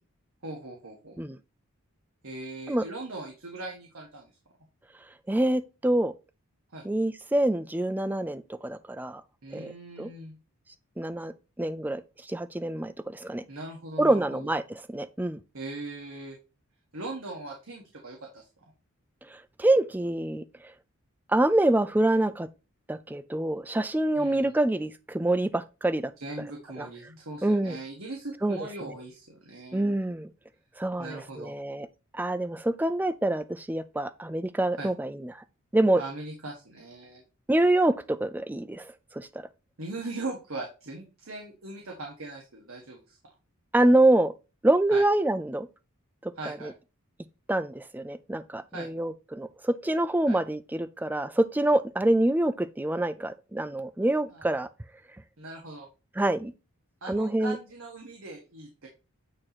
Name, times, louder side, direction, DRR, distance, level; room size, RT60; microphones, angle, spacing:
voice 1, 0.4-1.2 2.2-4.3 6.7-6.8 9.4-10.3 13.5-14.5 15.5-16.4 16.9-18.5 24.1-24.5 26.2-30.0 31.0-31.5 34.8-34.9 36.0-37.2 39.8-43.2 44.9-45.0 46.3-46.7 48.7-48.9 50.3-50.4 54.3-54.5 55.4-55.9 57.0-58.9, right 2 dB, 65° right, 1.4 m, -40 dB
voice 2, 5.3-6.1 6.8-9.2 9.5-9.7 10.0-10.1 11.0-12.0 12.3-13.4 14.0-15.4 19.3-20.4 21.3-22.5 22.9-26.1 26.8-26.9 27.4-27.8 28.4-28.6 29.7-30.3 30.8-31.9 32.1-35.4 35.7-36.0 37.5-39.3 43.7-44.3 44.6-45.7 46.2-46.7 47.5-54.7 56.2-56.5 57.1-57.6, right 1 dB, 10° right, 0.3 m, -26 dB
8.8 x 2.9 x 4.1 m
head